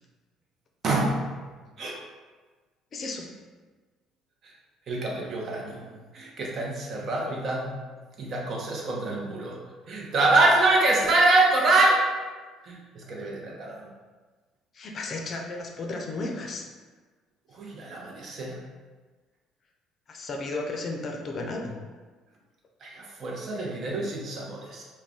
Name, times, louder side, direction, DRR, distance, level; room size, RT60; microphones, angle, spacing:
voice 1, 0.8-1.3 1.8-2.0 4.4-4.5 4.9-5.9 6.1-7.8 8.2-9.6 9.9-12.1 12.6-13.9 17.5-18.6 22.8-24.8, right 2 dB, 55° right, -2 dB, 0.7 m, -25 dB
voice 2, 2.9-3.3 14.7-16.7 20.1-21.8, left 2 dB, 50° left, 2 dB, 0.4 m, -34 dB
2.3 x 2.2 x 3.6 m, 1.4 s
supercardioid pair, 70°, 0 cm